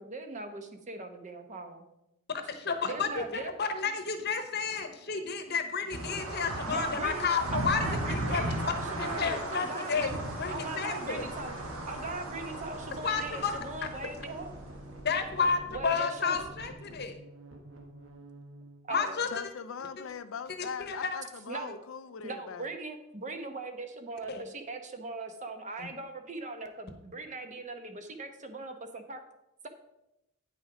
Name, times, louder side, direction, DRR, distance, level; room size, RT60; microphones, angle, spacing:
voice 1, 0.0-1.8 2.8-3.5 6.7-7.2 7.5-10.2 10.5-11.6 11.9-14.5 15.7-16.4 18.8-19.2 21.5-21.8 22.2-29.2, right 3 dB, 35° right, 6 dB, 0.9 m, -40 dB
voice 2, 2.5-8.4 9.0-10.1 10.4-11.3 13.0-13.6 15.0-17.2 18.9-19.3 20.6-21.2 24.3-24.4 25.8-25.9, left 5 dB, 50° left, 7 dB, 1.0 m, -31 dB
sound 1, 5.9-14.7, right 1 dB, 85° right, 1.5 m, -36 dB
sound 2, 10.2-18.8, right 1 dB, 70° right, 1.2 m, -48 dB
voice 3, 19.3-22.7, left 6 dB, 70° left, 11 dB, 0.5 m, -41 dB
9.2 x 6.3 x 4.9 m, 0.89 s
head